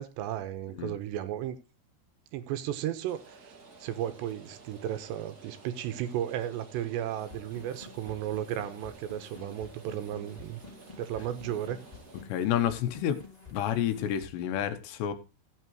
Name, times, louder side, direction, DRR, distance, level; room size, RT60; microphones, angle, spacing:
voice 1, 0.0-1.6 2.3-10.6 11.0-11.8, right 11 dB, 80° right, 3.1 m, -34 dB
Rain, 3.1-12.2, right 4 dB, 55° right, 1.0 m, -52 dB
sound 1, 7.1-14.3, left 4 dB, 20° left, 1.0 m, -50 dB
voice 2, 12.3-13.2 13.5-15.1, left 10 dB, 75° left, 3.1 m, -29 dB
16.0 x 8.5 x 3.0 m
omnidirectional pair, 5.2 m